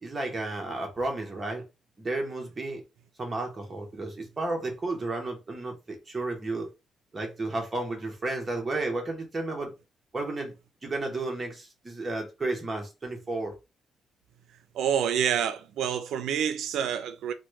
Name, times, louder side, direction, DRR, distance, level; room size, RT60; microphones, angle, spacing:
voice 1, 0.0-1.6 2.0-2.8 3.2-6.7 7.1-9.7 10.1-10.5 10.8-13.5, right 2 dB, 20° right, 0.9 m, -32 dB
voice 2, 14.7-17.3, right 8 dB, 85° right, 0.4 m, -27 dB
3.1 x 2.2 x 3.1 m
cardioid pair, 170°, 0 cm